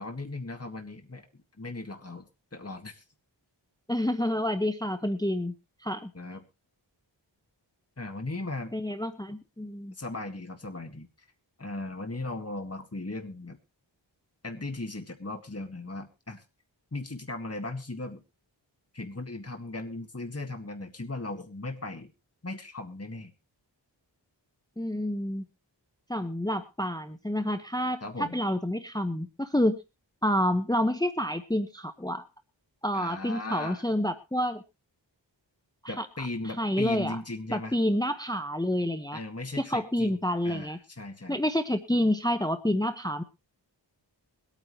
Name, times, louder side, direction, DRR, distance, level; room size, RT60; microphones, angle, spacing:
voice 1, 0.0-3.0 6.1-6.4 8.0-8.7 9.9-11.1 11.6-13.6 14.4-16.4 16.9-18.2 18.9-22.1 22.4-23.3 28.0-28.4 32.9-33.8 35.9-37.7 39.1-41.4, left 2 dB, 30° left, 5 dB, 1.8 m, -37 dB
voice 2, 3.9-5.5 5.8-6.1 8.7-9.9 24.8-25.4 26.1-29.8 30.2-32.2 32.8-34.6 35.8-36.1 36.6-37.2 37.5-39.2 39.6-40.8 41.3-43.2, left 1 dB, 10° left, 9 dB, 0.9 m, -28 dB
22.5 x 9.2 x 3.1 m, 0.26 s
wide cardioid pair, 55°, 45 cm